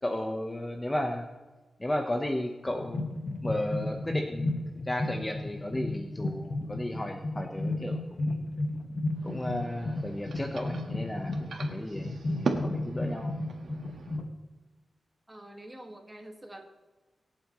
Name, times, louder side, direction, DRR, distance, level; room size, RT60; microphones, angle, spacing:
voice 1, 0.0-1.3 1.8-3.1 3.4-8.4 9.2-13.3, left 1 dB, 15° left, 3 dB, 1.1 m, -34 dB
sound 1, 2.7-14.3, left 2 dB, 45° left, 1.6 m, -33 dB
sound 2, 9.1-14.2, right 4 dB, 75° right, 1.6 m, -39 dB
voice 2, 15.3-16.7, right 1 dB, 15° right, 3 dB, 1.8 m, -46 dB
24.5 x 8.4 x 3.2 m, 1.2 s
wide cardioid pair, 100°, 0 cm